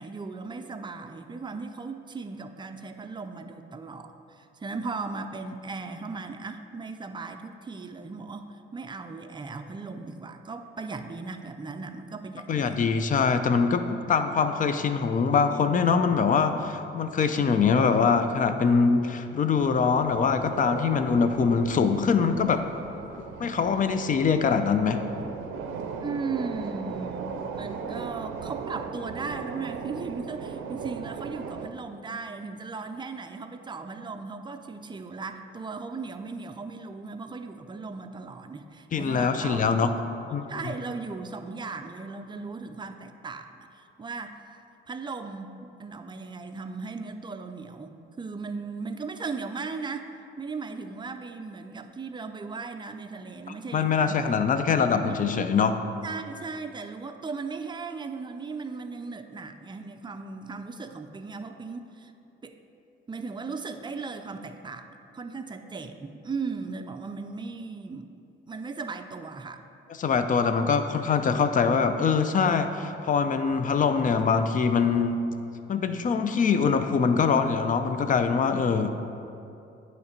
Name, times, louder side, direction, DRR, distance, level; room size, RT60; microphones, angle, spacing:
voice 1, 0.0-13.0 26.0-40.0 40.5-44.4 44.9-54.2 55.0-55.5 56.0-62.1 62.4-62.6 63.1-68.1 68.5-69.6, right 4 dB, 25° right, 7 dB, 0.4 m, -37 dB
voice 2, 12.5-22.6 23.4-25.0 38.9-39.9 40.3-40.4 53.7-55.7 70.0-75.2 75.7-78.9, left 5 dB, 40° left, 9 dB, 0.5 m, -23 dB
sound 1, 19.5-31.7, right 6 dB, 85° right, 0.5 m, -38 dB
9.5 x 3.2 x 5.2 m, 2.7 s
cardioid pair, 90°, 20 cm